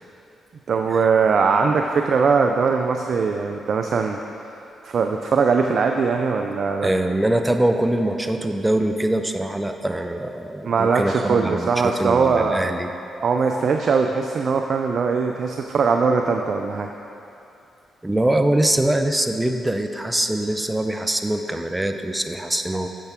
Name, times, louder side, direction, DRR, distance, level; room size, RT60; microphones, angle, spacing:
voice 1, 0.7-4.2 4.8-6.9 10.6-12.7 13.2-16.9, right 5 dB, 60° right, 4 dB, 0.4 m, -20 dB
voice 2, 6.8-12.9 13.2-13.7 18.0-22.9, right 1 dB, 10° right, 6 dB, 0.6 m, -23 dB
10.0 x 6.8 x 3.6 m, 2.8 s
supercardioid pair, 60°, 0 cm